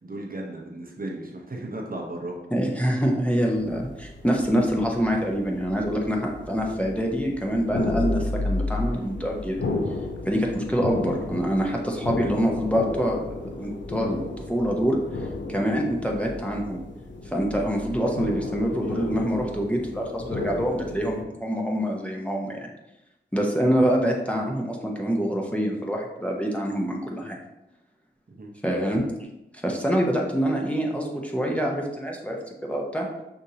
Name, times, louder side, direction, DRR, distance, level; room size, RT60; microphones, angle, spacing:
voice 1, 0.0-2.4 28.3-28.5, right 1 dB, 45° right, -1 dB, 0.8 m, -35 dB
voice 2, 2.5-9.6 10.3-15.0 15.5-16.8 17.3-22.7 23.3-27.4 28.6-29.0 29.5-33.1, equal, 5° left, -1 dB, 0.8 m, -25 dB
sound 1, 3.5-21.2, left 2 dB, 70° left, 0.6 m, -33 dB
6.2 x 2.7 x 2.8 m, 0.93 s
cardioid pair, 45°, 20 cm